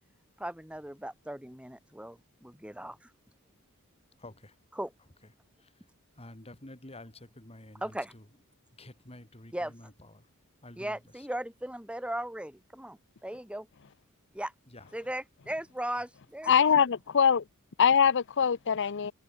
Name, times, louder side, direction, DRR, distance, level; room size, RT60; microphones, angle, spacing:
voice 1, 0.4-3.1 4.8-4.9 7.8-8.1 9.5-9.7 10.8-13.7 14.3-14.5 14.9-16.5, right 1 dB, 5° right, 3.4 m, -37 dB
voice 2, 4.2-4.6 5.2-5.3 5.6-5.9 6.2-8.2 8.8-10.3 10.6-11.3 14.7-14.9, left 1 dB, 25° left, 4.4 m, -50 dB
voice 3, 16.5-17.4 17.8-19.1, left 7 dB, 55° left, 0.6 m, -23 dB
head